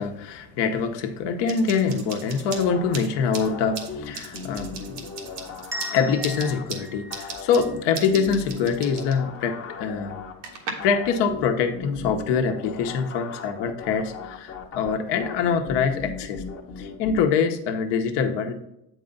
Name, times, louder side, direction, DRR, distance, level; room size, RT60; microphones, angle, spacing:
voice 1, 0.0-5.0 5.9-10.2 10.8-16.4 16.8-18.5, left 6 dB, 60° left, 6 dB, 1.1 m, -24 dB
sound 1, 1.5-10.7, right 6 dB, 90° right, 1.4 m, -39 dB
sound 2, 2.5-17.2, left 5 dB, 30° left, 1.0 m, -38 dB
sound 3, 5.7-8.5, equal, 5° right, 0.4 m, -39 dB
7.8 x 4.8 x 3.9 m, 0.82 s
supercardioid pair, 95°, 47 cm